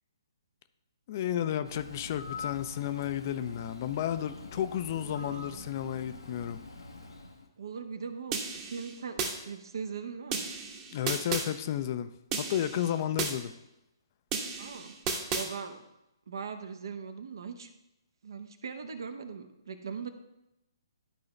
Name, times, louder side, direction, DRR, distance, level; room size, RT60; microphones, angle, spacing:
voice 1, 1.1-6.6 10.9-12.1 12.4-13.5, left 10 dB, 40° left, 11 dB, 0.5 m, -32 dB
Bird, 1.6-7.5, left 4 dB, 85° left, 1.0 m, -45 dB
voice 2, 4.9-5.7 7.6-10.5 14.6-14.9 15.3-15.8 16.3-17.7 18.2-20.1, right 6 dB, 60° right, 8 dB, 0.9 m, -40 dB
sound 1, 8.3-9.3 10.3-11.5 12.3-13.3 14.3-15.5, right 5 dB, 25° right, 1.1 m, -34 dB
12.0 x 4.8 x 3.2 m, 0.91 s
figure-of-eight pair, 130°, 2 cm